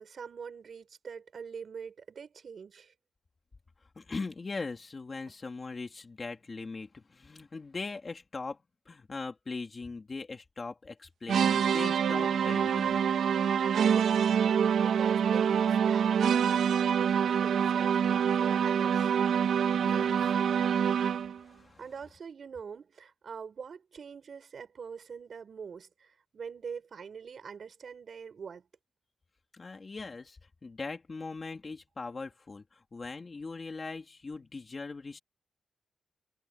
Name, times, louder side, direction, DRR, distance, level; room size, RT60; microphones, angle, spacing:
voice 1, 0.0-2.9 13.8-19.1 21.8-28.7, right 6 dB, 45° right, 6.7 m, -44 dB
voice 2, 3.9-8.6 8.9-13.0 19.8-20.4 21.4-21.8 29.5-35.2, left 3 dB, 25° left, 3.1 m, -40 dB
sound 1, 11.3-21.4, right 8 dB, 70° right, 1.9 m, -26 dB
wide cardioid pair, 150°, 0 cm